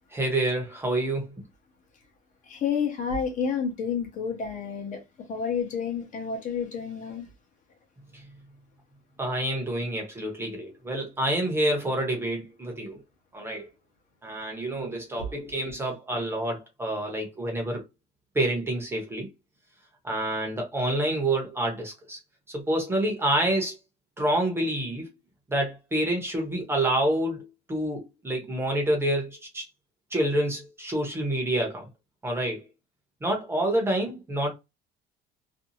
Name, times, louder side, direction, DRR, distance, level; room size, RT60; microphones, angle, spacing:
voice 1, 0.1-1.3 8.1-8.2 9.2-13.0 13.3-13.7 14.2-17.8 18.3-19.3 20.0-22.2 22.5-23.8 24.2-25.1 25.5-29.6 30.1-31.8 32.2-32.6 33.2-34.5, right 1 dB, 10° right, 0.8 m, -28 dB
voice 2, 2.4-7.3 15.2-15.7, left 6 dB, 40° left, 0.8 m, -30 dB
2.6 x 2.3 x 2.8 m
cardioid pair, 175°, 19 cm